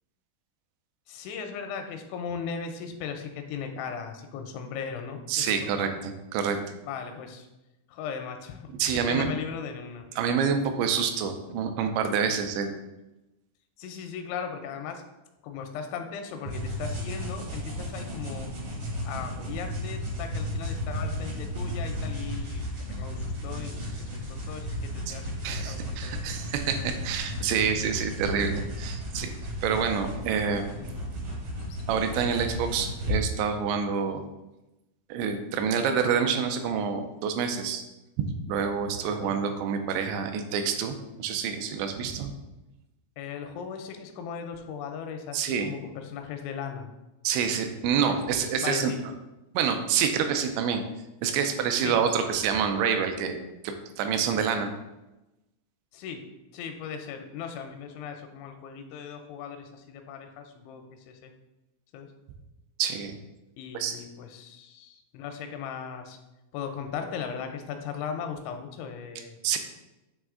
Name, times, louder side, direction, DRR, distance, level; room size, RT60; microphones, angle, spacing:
voice 1, 1.1-5.9 6.9-7.5 7.9-8.6 9.1-10.1 13.8-15.0 15.4-18.6 19.1-22.7 23.0-26.4 30.8-31.1 39.1-39.4 43.2-46.9 48.0-49.0 51.8-52.0 55.9-56.2 56.5-61.3 61.9-62.1 63.6-66.2 66.5-69.4, left 6 dB, 85° left, 6 dB, 3.0 m, -38 dB
voice 2, 5.3-6.6 8.8-9.4 10.2-12.7 25.1-25.2 25.4-29.3 29.6-30.6 31.9-34.2 35.1-37.8 38.2-42.3 45.3-45.7 47.2-48.9 49.5-50.8 51.2-53.4 53.6-54.7 62.8-63.1 63.7-64.0 69.4-69.6, right 7 dB, 80° right, 6 dB, 2.8 m, -27 dB
sound 1, 16.4-33.2, left 1 dB, 65° right, 1.3 m, -34 dB
8.7 x 3.2 x 3.7 m, 0.97 s
omnidirectional pair, 5.3 m